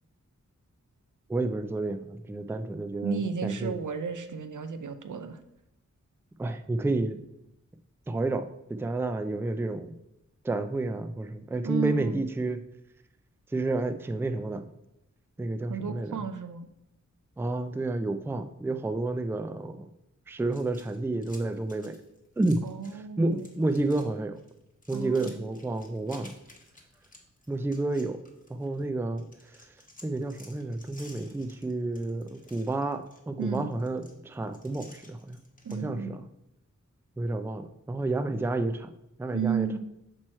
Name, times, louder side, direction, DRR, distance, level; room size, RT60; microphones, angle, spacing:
voice 1, 1.3-3.8 6.4-7.2 8.1-10.0 10.4-12.6 13.5-14.7 15.4-16.2 17.4-19.9 20.3-22.0 22.4-22.7 22.9-24.4 24.9-26.3 27.5-28.2 28.5-29.7 30.0-35.4 35.7-36.2 37.2-38.9 39.2-39.8, right 2 dB, 10° right, 9 dB, 0.3 m, -30 dB
voice 2, 3.0-5.4 11.6-12.2 15.7-16.7 22.6-23.4 24.9-25.4 33.4-33.7 35.6-36.2 39.3-39.8, right 6 dB, 75° right, 9 dB, 0.6 m, -33 dB
sound 1, 20.5-23.0 23.3-24.1 24.4-28.8 29.2-35.8, left 1 dB, 25° left, 1.2 m, -54 dB
6.1 x 4.5 x 4.3 m, 0.83 s
wide cardioid pair, 85°, 31 cm